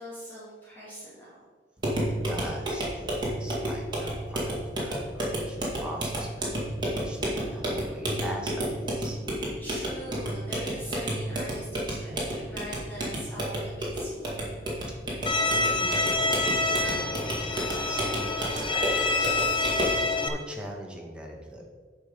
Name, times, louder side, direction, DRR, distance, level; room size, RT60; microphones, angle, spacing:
voice 1, 0.0-1.3 3.5-3.6 9.6-14.4, equal, 10° left, -9 dB, 2.4 m, -42 dB
sound 1, 1.8-20.0, right 1 dB, 25° right, 2.1 m, -31 dB
voice 2, 2.1-9.2 15.1-19.5 20.0-21.7, right 1 dB, 5° right, -1 dB, 1.4 m, -42 dB
Bowed string instrument, 15.3-20.3, left 2 dB, 30° left, 0.7 m, -27 dB
9.7 x 5.2 x 5.0 m, 1.4 s
head